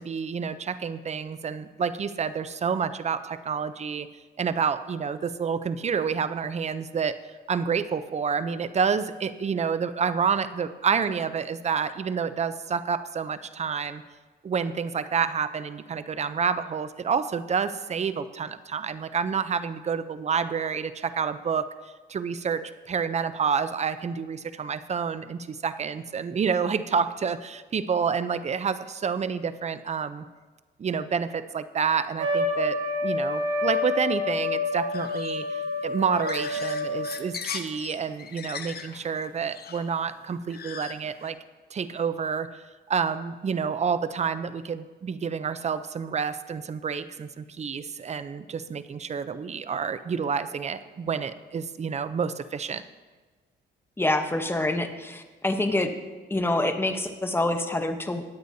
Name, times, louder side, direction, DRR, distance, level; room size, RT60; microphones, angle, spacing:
voice 1, 0.0-4.1 4.4-7.2 7.5-14.0 14.4-21.7 22.1-30.2 30.8-35.5 35.8-41.4 41.7-42.6 42.9-52.8, right 6 dB, 35° right, 13 dB, 0.6 m, -28 dB
Trumpet, 32.2-37.2, left 2 dB, 75° right, 2.6 m, -28 dB
sound 1, 34.9-41.3, left 7 dB, 50° left, 0.9 m, -40 dB
voice 2, 54.0-55.9 56.3-58.2, left 2 dB, 10° left, 6 dB, 1.0 m, -26 dB
20.0 x 8.0 x 2.8 m, 1.3 s
cardioid pair, 90°, 20 cm